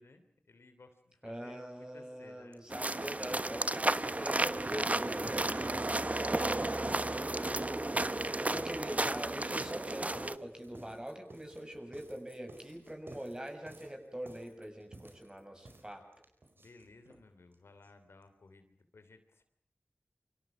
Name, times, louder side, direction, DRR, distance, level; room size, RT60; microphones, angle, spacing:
voice 1, 0.0-2.7 16.5-19.4, left 3 dB, 85° left, 8 dB, 3.2 m, -58 dB
voice 2, 1.2-5.5 6.7-7.4 7.6-7.8 8.4-16.2, right 1 dB, 20° right, 5 dB, 7.3 m, -43 dB
sound 1, 2.5-2.6 2.9-17.2 17.5-17.6 17.8-17.9 18.2-18.3, right 2 dB, 60° right, 4.8 m, -55 dB
sound 2, 2.7-10.4, right 2 dB, 35° right, 1.1 m, -33 dB
28.5 x 25.0 x 6.0 m, 0.66 s
wide cardioid pair, 50°, 4 cm